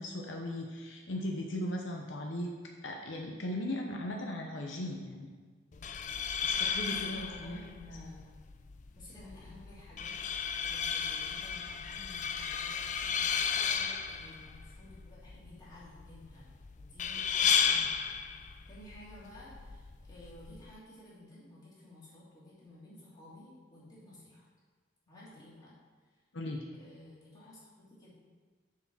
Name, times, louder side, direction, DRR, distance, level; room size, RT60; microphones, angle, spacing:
voice 1, 0.0-2.5 2.8-5.3 6.4-7.6 26.3-26.6, left 1 dB, 75° left, 1 dB, 0.8 m, -37 dB
sound 1, 5.7-20.7, left 7 dB, 40° left, 0.4 m, -34 dB
voice 2, 6.7-8.3 8.9-16.5 16.8-17.9 18.7-24.5 25.1-25.8 26.1-26.2 26.7-28.1, left 1 dB, 20° left, -8 dB, 2.5 m, -53 dB
7.2 x 4.8 x 6.1 m, 1.5 s
head